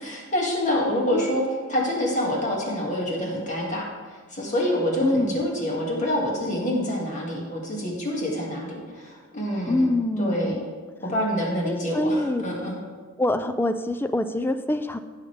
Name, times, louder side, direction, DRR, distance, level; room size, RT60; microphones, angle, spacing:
voice 1, 0.0-1.4 1.7-9.9 10.2-10.6 11.0-12.8, left 1 dB, 35° left, -2 dB, 2.1 m, -27 dB
voice 2, 5.0-5.4 9.7-10.6 11.6-12.4 13.2-15.0, left 1 dB, 10° left, 10 dB, 0.4 m, -25 dB
15.0 x 6.5 x 3.4 m, 1.5 s
head